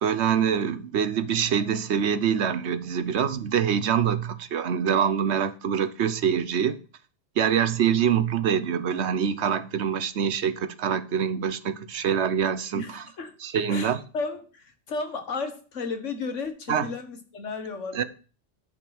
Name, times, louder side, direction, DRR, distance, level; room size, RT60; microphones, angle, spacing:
voice 1, 0.0-6.8 7.4-13.0 13.4-14.0 16.7-16.9 17.9-18.0, right 8 dB, 65° right, 1.1 m, -25 dB
voice 2, 12.7-13.4 13.7-18.0, left 4 dB, 90° left, 1.8 m, -34 dB
10.5 x 5.2 x 6.0 m
omnidirectional pair, 1.2 m